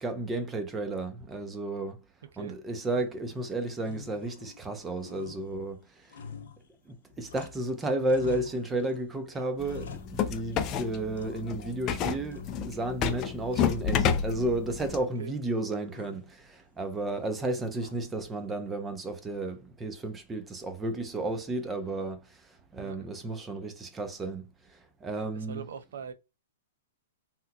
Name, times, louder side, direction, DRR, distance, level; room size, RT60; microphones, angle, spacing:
voice 1, 0.0-2.0 2.4-5.8 6.1-6.2 6.9-22.4 22.7-25.7, right 2 dB, 15° right, 0.6 m, -33 dB
sound 1, 2.8-3.4 3.8-4.7 5.0-7.7 8.0-9.0 9.3-10.7 11.2-11.8 12.3-12.9 13.3-14.3 14.6-15.4 15.9-16.3 17.8-18.3, left 7 dB, 80° left, 0.7 m, -48 dB
sound 2, 9.6-15.0, left 7 dB, 30° left, 0.4 m, -30 dB
voice 2, 25.3-26.1, right 7 dB, 70° right, 0.5 m, -41 dB
3.5 x 2.9 x 2.3 m
hypercardioid pair, 145°, 0 cm